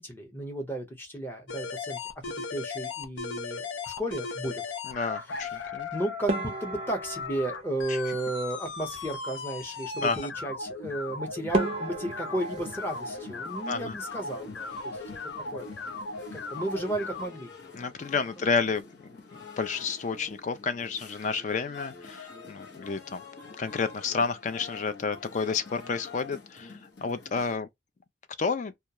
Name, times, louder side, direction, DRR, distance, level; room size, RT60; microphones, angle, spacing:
voice 1, 0.0-2.0 2.3-4.6 5.6-15.0 15.5-15.8 16.3-17.9 18.4-18.5, right 1 dB, 10° left, 0.7 m, -34 dB
sound 1, 1.5-17.3, left 4 dB, 90° left, 0.6 m, -37 dB
voice 2, 4.9-5.9 10.0-10.2 13.7-14.0 17.8-18.8 19.6-23.2 23.6-27.7 28.4-28.7, left 5 dB, 40° left, 0.3 m, -30 dB
sound 2, 6.3-8.7 11.0-11.1 11.5-14.3 14.6-15.3 15.6-15.8 16.1-16.2 16.9-17.2, right 2 dB, 35° right, 0.4 m, -35 dB
sound 3, 11.5-27.6, left 4 dB, 70° left, 0.9 m, -48 dB
2.3 x 2.0 x 2.8 m
head